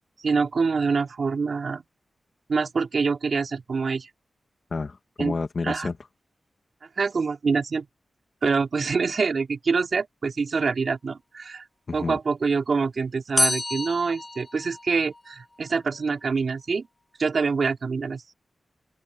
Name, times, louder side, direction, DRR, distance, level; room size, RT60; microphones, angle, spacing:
voice 1, 0.2-1.8 2.5-4.1 5.2-5.3 5.6-5.9 7.0-7.9 8.4-11.6 11.9-16.9 17.2-18.2, right 4 dB, 60° right, 3.1 m, -25 dB
voice 2, 4.7-6.0 11.9-12.2, left 4 dB, 50° left, 1.6 m, -30 dB
sound 1, 13.4-15.3, left 2 dB, 25° left, 3.5 m, -27 dB
wide cardioid pair, 120°, 0 cm